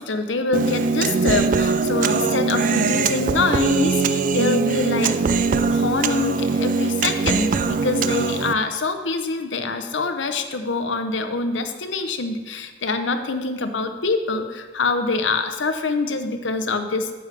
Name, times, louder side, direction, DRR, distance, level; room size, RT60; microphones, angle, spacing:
voice 1, 0.0-5.2 5.7-17.1, left 3 dB, 75° left, 7 dB, 0.8 m, -25 dB
Human voice, 0.5-8.5, right 4 dB, 45° right, 0.3 m, -21 dB
9.6 x 8.4 x 3.3 m, 1.4 s
head